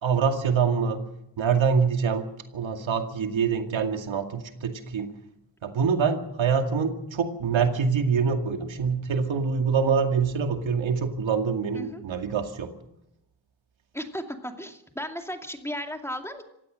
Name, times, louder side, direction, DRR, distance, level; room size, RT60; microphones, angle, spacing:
voice 1, 0.0-1.1 1.4-5.1 5.6-12.7, right 6 dB, 80° right, 5 dB, 2.4 m, -25 dB
voice 2, 13.9-16.5, equal, 5° left, 4 dB, 2.4 m, -35 dB
26.0 x 16.5 x 6.4 m, 0.84 s
cardioid pair, 90°, 45 cm